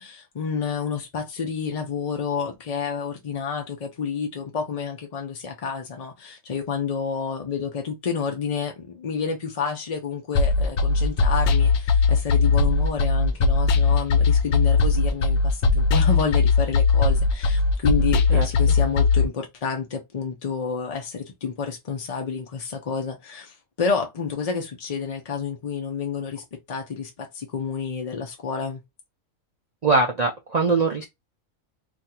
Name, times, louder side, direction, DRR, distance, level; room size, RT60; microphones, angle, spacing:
voice 1, 0.0-28.8, left 6 dB, 55° left, 0.4 m, -29 dB
sound 1, 10.4-19.2, left 4 dB, 80° left, 1.0 m, -19 dB
voice 2, 18.3-18.8 29.8-31.0, right 3 dB, 70° right, 0.3 m, -22 dB
2.5 x 2.4 x 4.1 m
omnidirectional pair, 1.4 m